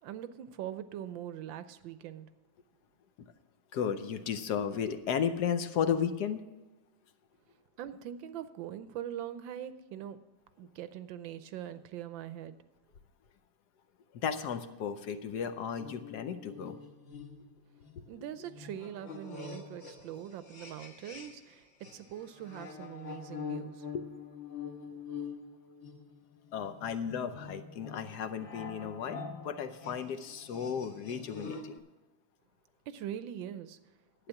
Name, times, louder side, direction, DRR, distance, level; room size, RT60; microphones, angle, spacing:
voice 1, 0.0-2.3 7.8-10.2 10.6-12.5 18.1-23.9 32.9-33.8, right 10 dB, 75° right, 1.3 m, -42 dB
voice 2, 3.7-6.5 14.1-16.8 23.9-24.0 26.5-31.8, left 7 dB, 65° left, 1.1 m, -34 dB
sound 1, 15.8-21.5 21.8-31.8, left 5 dB, 45° left, 1.1 m, -45 dB
11.5 x 8.9 x 5.8 m
omnidirectional pair, 2.3 m